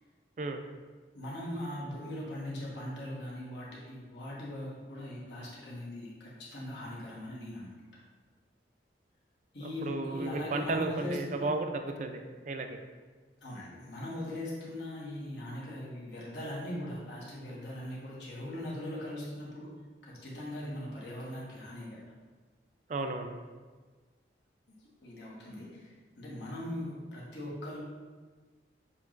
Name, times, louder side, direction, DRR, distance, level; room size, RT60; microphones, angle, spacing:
voice 1, 1.1-8.0 9.5-11.5 13.4-19.7 20.0-22.0 25.0-27.8, left 1 dB, 80° left, -5 dB, 1.2 m, -40 dB
voice 2, 9.6-12.8 22.9-23.3, right 3 dB, 45° right, 6 dB, 0.3 m, -34 dB
6.8 x 2.9 x 2.5 m, 1.4 s
head